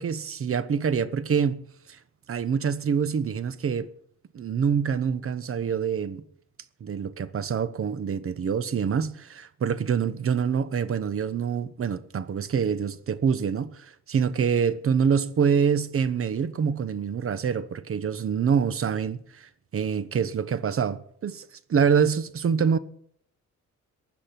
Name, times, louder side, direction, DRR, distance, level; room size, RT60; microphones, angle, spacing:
voice 1, 0.0-1.6 1.9-2.0 2.3-3.9 4.3-6.2 6.8-22.8, right 7 dB, 45° right, 1.1 m, -26 dB
16.0 x 10.0 x 5.9 m
cardioid pair, 90°, 30 cm